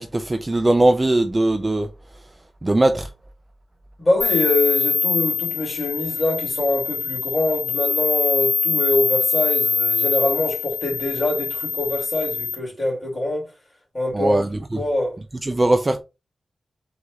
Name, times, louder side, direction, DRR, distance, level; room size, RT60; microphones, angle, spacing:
voice 1, 0.0-1.9 2.6-3.1 14.1-14.8 15.4-16.0, right 1 dB, 20° right, 0.3 m, -20 dB
voice 2, 4.0-13.5 13.9-14.4 14.7-15.2, left 2 dB, 20° left, 2.4 m, -24 dB
ringing ears, 4.2-12.6, left 5 dB, 60° left, 0.7 m, -23 dB
3.9 x 2.4 x 4.6 m
wide cardioid pair, 170°, 0 cm